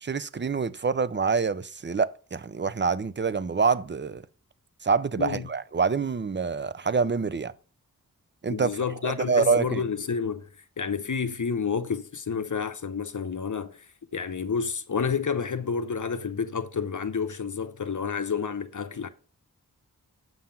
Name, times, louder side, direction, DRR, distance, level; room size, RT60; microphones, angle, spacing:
voice 1, 0.0-4.2 4.8-7.5 8.4-8.7 9.0-9.8, right 5 dB, 30° right, 0.5 m, -26 dB
voice 2, 8.5-10.5 10.8-19.1, left 6 dB, 55° left, 0.8 m, -30 dB
7.7 x 5.8 x 5.7 m
wide cardioid pair, 70°, 36 cm